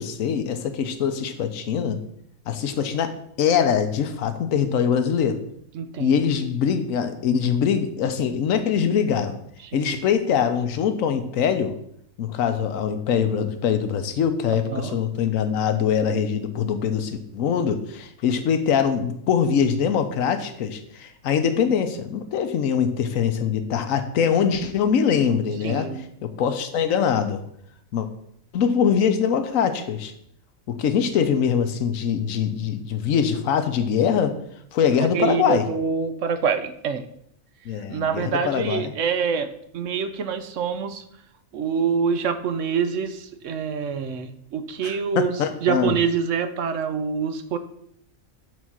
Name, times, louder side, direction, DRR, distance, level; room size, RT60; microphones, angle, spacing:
voice 1, 0.0-2.0 2.5-5.4 6.0-9.4 9.7-11.7 12.2-25.9 26.2-27.4 27.9-28.1 28.5-30.1 30.7-34.3 34.7-35.6 37.7-38.9 44.8-46.0, left 7 dB, 80° left, 8 dB, 1.2 m, -23 dB
voice 2, 5.7-6.2 9.6-9.9 14.7-15.0 25.6-26.0 34.9-37.1 37.7-41.0 41.5-45.3 45.6-47.6, right 6 dB, 70° right, 9 dB, 1.0 m, -26 dB
8.0 x 4.2 x 6.1 m, 0.71 s
omnidirectional pair, 1.4 m